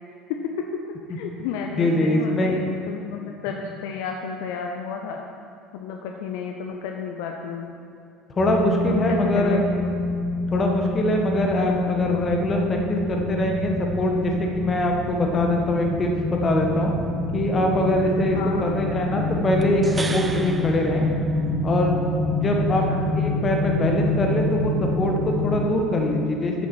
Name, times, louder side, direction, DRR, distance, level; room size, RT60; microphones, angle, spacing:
voice 1, 0.3-0.7 1.1-5.2 5.7-7.8 8.9-9.6 18.3-18.6 22.6-23.0, left 6 dB, 60° left, 2 dB, 0.6 m, -31 dB
voice 2, 1.8-2.6 8.3-9.6 10.5-13.7 14.0-16.9 17.3-19.8 20.1-21.1 21.6-22.8 23.2-26.5, left 1 dB, 30° left, 1 dB, 1.5 m, -23 dB
sound 1, 8.4-25.6, left 2 dB, 15° left, 2.5 m, -26 dB
sound 2, 19.6-21.9 25.3-25.4, right 3 dB, 20° right, 0.6 m, -35 dB
9.8 x 7.1 x 4.7 m, 2.5 s
figure-of-eight pair, 65°, 0 cm